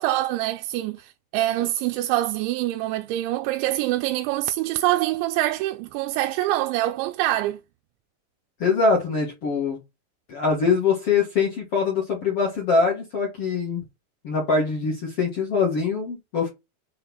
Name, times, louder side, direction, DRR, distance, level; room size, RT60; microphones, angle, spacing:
voice 1, 0.0-7.6, right 15 dB, 90° right, 2.9 m, -25 dB
voice 2, 8.6-9.8 10.3-13.8 14.2-16.5, left 4 dB, 50° left, 1.8 m, -23 dB
6.8 x 4.1 x 5.4 m
omnidirectional pair, 5.1 m